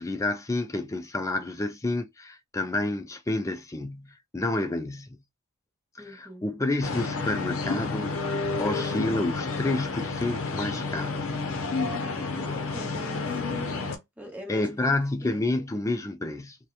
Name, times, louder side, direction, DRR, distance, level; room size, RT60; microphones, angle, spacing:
voice 1, 0.0-5.2 6.1-11.4 14.5-16.6, left 2 dB, 15° left, 0.3 m, -29 dB
voice 2, 6.0-6.4 12.3-13.7 14.2-15.0 15.2-15.6, equal, 5° right, 1.0 m, -42 dB
sound 1, 6.8-14.0, left 3 dB, 65° left, 0.6 m, -30 dB
2.8 x 2.1 x 2.4 m
head